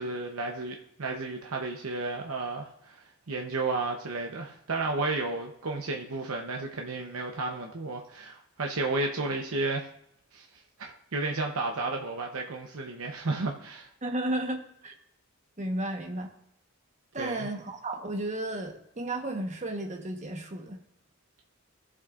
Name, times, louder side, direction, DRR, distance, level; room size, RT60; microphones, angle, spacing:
voice 1, 0.0-9.9 10.3-10.5 10.8-13.9 17.2-17.5, right 3 dB, 85° right, 2 dB, 0.9 m, -32 dB
voice 2, 14.0-14.9 15.6-16.3 17.1-20.8, right 1 dB, 35° right, 3 dB, 1.1 m, -33 dB
16.0 x 7.4 x 2.5 m, 0.73 s
head